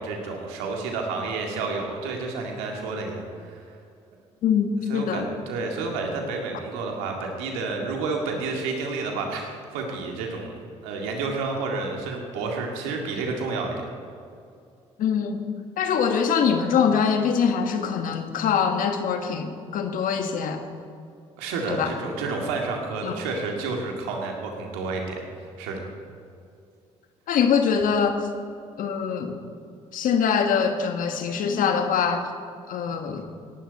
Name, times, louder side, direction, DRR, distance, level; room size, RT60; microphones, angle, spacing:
voice 1, 0.0-3.6 4.9-10.6 10.8-13.8 21.4-25.2 25.6-25.8, right 3 dB, 85° right, 1 dB, 2.2 m, -30 dB
voice 2, 4.4-5.3 15.0-15.5 15.8-20.6 21.7-21.9 23.0-23.1 27.3-28.3 28.8-29.4 29.9-32.3 32.7-33.2, left 6 dB, 70° left, 6 dB, 1.5 m, -23 dB
17.5 x 12.0 x 4.2 m, 2.4 s
supercardioid pair, 60°, 15 cm